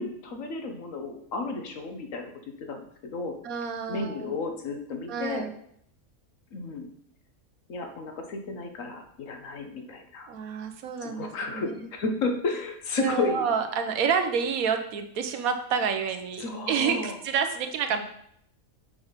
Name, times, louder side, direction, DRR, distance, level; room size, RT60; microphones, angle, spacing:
voice 1, 0.0-2.3 2.6-2.8 3.1-3.4 3.9-5.4 6.5-6.9 7.7-10.3 11.0-13.5 16.4-17.2 17.9-18.0, left 3 dB, 65° left, 4 dB, 1.3 m, -32 dB
voice 2, 3.4-4.3 5.1-5.5 10.3-11.9 13.0-18.0, right 6 dB, 80° right, 7 dB, 1.2 m, -29 dB
6.9 x 3.4 x 5.6 m, 0.69 s
omnidirectional pair, 1.5 m